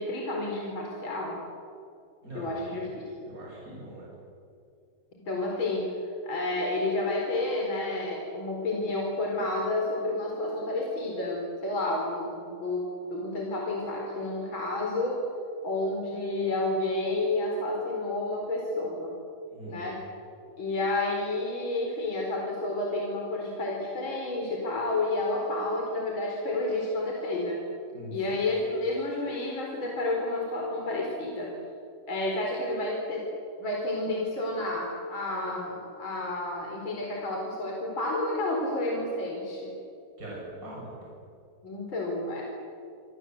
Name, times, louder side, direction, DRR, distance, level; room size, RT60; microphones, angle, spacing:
voice 1, 0.0-1.4 2.3-3.0 5.2-5.9 6.2-15.2 15.6-19.1 19.7-20.0 20.6-27.6 28.1-31.5 32.1-33.2 33.6-39.7 41.6-42.4, left 2 dB, 35° left, -1 dB, 5.0 m, -30 dB
voice 2, 2.2-4.1 19.5-19.9 27.9-28.3 40.2-41.1, right 1 dB, 25° right, -4 dB, 7.5 m, -42 dB
27.5 x 26.5 x 8.0 m, 2.5 s
omnidirectional pair, 3.6 m